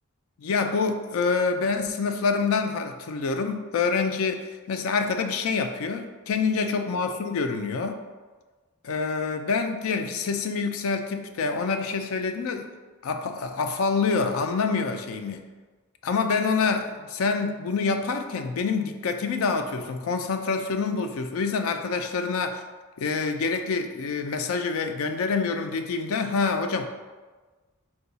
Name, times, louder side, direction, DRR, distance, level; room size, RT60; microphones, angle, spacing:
voice 1, 0.4-8.0 8.8-12.7 13.0-15.4 16.0-22.6 23.0-26.9, left 4 dB, 70° left, 7 dB, 0.4 m, -26 dB
4.6 x 2.2 x 4.0 m, 1.3 s
head